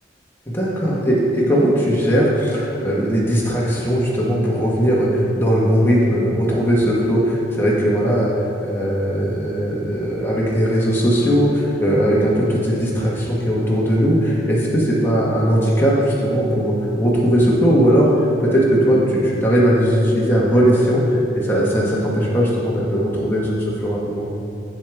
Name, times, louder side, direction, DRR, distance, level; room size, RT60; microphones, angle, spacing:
voice 1, 0.5-18.1 18.4-24.3, equal, 10° left, -6 dB, 1.3 m, -18 dB
7.4 x 7.0 x 3.4 m, 2.7 s
head